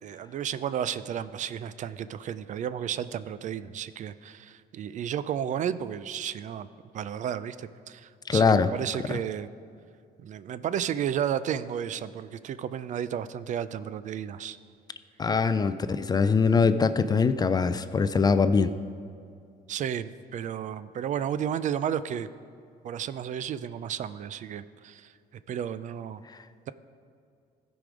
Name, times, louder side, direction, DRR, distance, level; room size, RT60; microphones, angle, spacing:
voice 1, 0.0-6.7 6.9-9.5 10.2-14.6 19.7-22.3 22.8-25.1 25.5-26.2, right 9 dB, 45° right, 15 dB, 0.4 m, -32 dB
voice 2, 8.3-8.7 9.1-9.2 15.2-18.7, left 5 dB, 25° left, 12 dB, 0.3 m, -22 dB
15.0 x 5.1 x 5.0 m, 2.4 s
cardioid pair, 110°, 17 cm